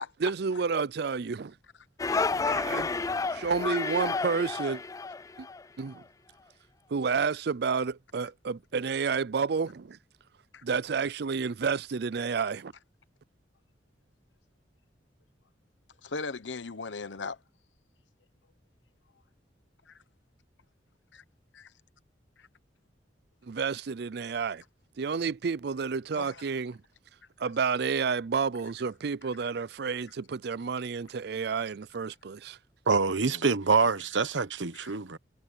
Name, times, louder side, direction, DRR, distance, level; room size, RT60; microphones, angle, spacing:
voice 1, 0.0-1.5 2.5-2.9 3.3-4.8 5.4-5.5 5.8-6.0 6.9-10.0 10.6-12.7 23.4-24.6 25.0-26.8 27.4-32.6, right 5 dB, 60° right, 0.5 m, -30 dB
sound 1, 2.0-5.6, left 4 dB, 20° left, 0.3 m, -30 dB
voice 2, 16.0-17.4 19.9-20.0 21.1-21.2 21.5-21.7 22.4-22.5 26.1-26.4 29.4-29.5 33.2-33.4 34.7-34.9, left 4 dB, 90° left, 1.0 m, -38 dB
voice 3, 32.9-35.2, right 4 dB, 90° right, 1.0 m, -25 dB
head